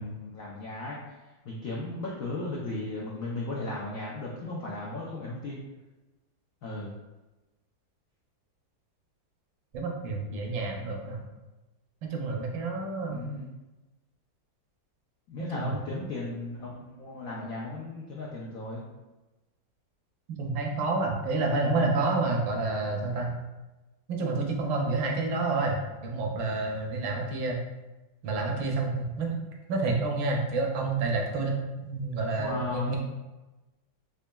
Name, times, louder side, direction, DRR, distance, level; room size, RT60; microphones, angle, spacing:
voice 1, 0.0-5.6 6.6-6.9 13.1-13.5 15.3-18.8 21.6-22.1 32.4-33.0, left 2 dB, 90° left, -4 dB, 0.7 m, -36 dB
voice 2, 9.7-11.2 12.1-13.2 15.4-15.8 20.4-23.3 24.1-27.6 28.2-29.4 29.7-33.0, right 3 dB, 75° right, 1 dB, 1.3 m, -29 dB
4.0 x 3.4 x 2.2 m, 1.1 s
omnidirectional pair, 2.2 m